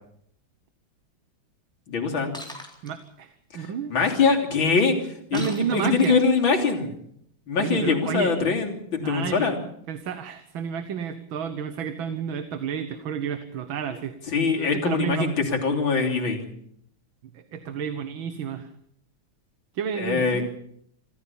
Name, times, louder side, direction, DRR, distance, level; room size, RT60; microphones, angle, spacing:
voice 1, 1.9-2.3 3.5-7.0 7.5-9.6 14.3-15.3 15.6-16.5 20.0-20.4, left 4 dB, 80° left, 1 dB, 4.0 m, -23 dB
Shatter, 2.3-2.9 5.3-6.4, equal, ahead, 3.8 m, -39 dB
voice 2, 2.8-3.9 5.3-6.2 7.6-8.3 9.0-9.5 9.9-14.1 14.5-15.4 17.3-18.7 19.7-20.5, right 7 dB, 85° right, 10 dB, 2.0 m, -31 dB
26.5 x 15.5 x 7.1 m, 0.69 s
omnidirectional pair, 2.1 m